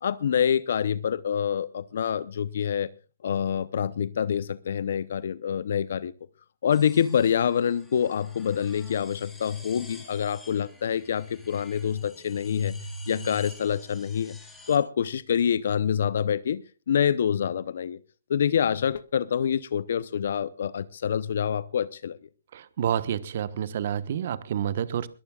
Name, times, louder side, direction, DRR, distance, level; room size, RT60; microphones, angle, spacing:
voice 1, 0.0-2.9 3.2-6.1 6.6-14.4 14.7-16.6 16.9-18.0 18.3-22.2, left 8 dB, 60° left, 18 dB, 0.7 m, -26 dB
sound 1, 6.7-14.8, right 1 dB, 5° left, 3.6 m, -46 dB
voice 2, 22.5-25.1, right 9 dB, 50° right, 15 dB, 1.2 m, -29 dB
22.0 x 17.5 x 2.4 m, 0.34 s
hypercardioid pair, 145°, 0 cm